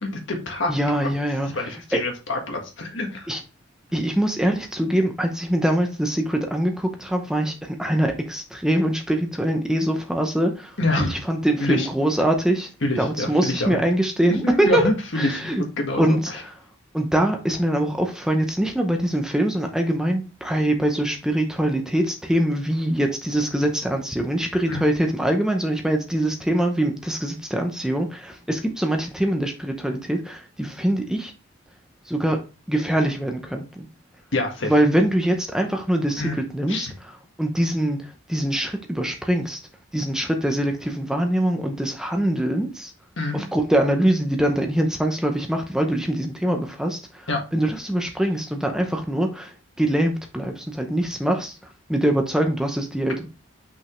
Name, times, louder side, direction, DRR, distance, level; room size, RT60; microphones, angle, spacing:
voice 1, 0.0-0.7 1.0-1.1 1.5-3.3 10.8-11.2 11.6-11.9 12.8-13.8 14.3-16.4 24.7-24.8 34.3-34.7 36.2-36.4 36.7-36.9 43.2-43.5 47.3-47.4, left 2 dB, 65° left, 3 dB, 1.6 m, -26 dB
voice 2, 0.7-1.5 1.9-2.0 3.3-3.4 3.9-10.7 11.0-12.7 13.0-14.8 15.2-15.6 16.0-16.2 16.9-31.3 32.1-32.4 32.7-33.9 34.6-36.9 37.4-39.6 39.9-42.9 43.3-47.0 47.5-49.5 49.8-51.5 51.9-53.3, right 1 dB, 5° right, 4 dB, 0.7 m, -23 dB
5.9 x 5.3 x 3.1 m, 0.31 s
head